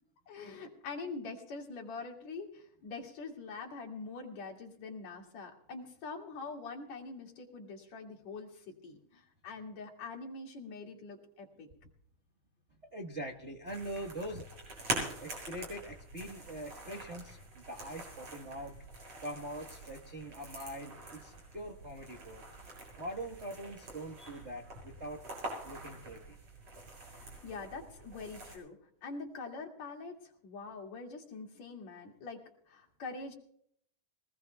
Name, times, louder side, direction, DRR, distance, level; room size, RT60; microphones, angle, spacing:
voice 1, 0.3-11.7 27.4-28.8 29.0-33.4, left 4 dB, 60° left, 1 dB, 3.6 m, -44 dB
voice 2, 12.9-14.5 14.9-22.4 23.0-25.2 25.6-26.4, right 1 dB, 70° right, 1 dB, 0.6 m, -43 dB
sound 1, 13.7-28.6, right 2 dB, 50° right, 8.0 m, -45 dB
23.5 x 19.0 x 2.3 m, 0.67 s
omnidirectional pair, 3.6 m